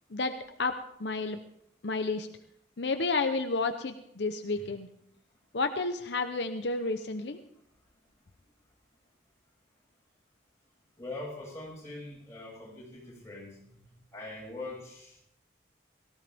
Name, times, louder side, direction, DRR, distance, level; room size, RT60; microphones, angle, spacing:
voice 1, 0.6-1.4 1.8-2.3 2.8-4.9 5.5-7.4, left 3 dB, 70° left, 7 dB, 0.8 m, -31 dB
voice 2, 11.0-13.6 14.1-15.2, left 2 dB, 15° left, -4 dB, 7.0 m, -42 dB
18.0 x 15.5 x 3.5 m, 0.72 s
head